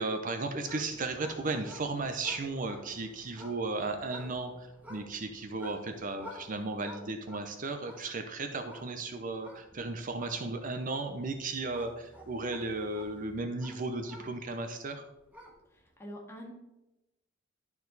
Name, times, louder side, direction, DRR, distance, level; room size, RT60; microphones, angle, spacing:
voice 1, 0.0-15.0, right 3 dB, 40° right, 6 dB, 0.6 m, -35 dB
sound 1, 0.5-14.7 15.1-15.8, equal, 10° right, 1.4 m, -52 dB
voice 2, 15.7-16.5, equal, 15° left, -2 dB, 1.8 m, -45 dB
11.5 x 4.6 x 4.0 m, 0.95 s
head